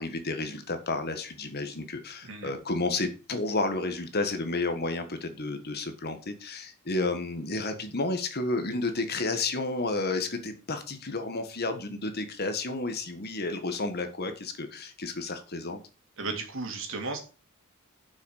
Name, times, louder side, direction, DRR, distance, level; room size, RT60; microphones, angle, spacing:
voice 1, 0.0-15.8, left 3 dB, 45° left, 8 dB, 1.6 m, -31 dB
voice 2, 2.2-2.5 16.2-17.2, right 3 dB, 60° right, 3 dB, 2.8 m, -34 dB
7.4 x 6.3 x 6.5 m, 0.35 s
head